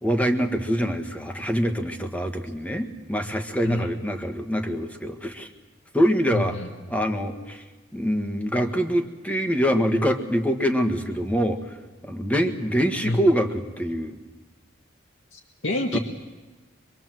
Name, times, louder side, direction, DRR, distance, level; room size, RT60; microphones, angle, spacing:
voice 1, 0.0-5.5 5.9-6.6 6.9-7.6 7.9-11.8 12.0-14.2 15.9-16.0, equal, 5° left, 6 dB, 1.6 m, -24 dB
voice 2, 3.6-4.0 6.3-6.7 13.0-13.2 15.3-16.0, left 1 dB, 75° left, 0 dB, 1.8 m, -28 dB
25.0 x 24.0 x 7.7 m, 1.3 s
head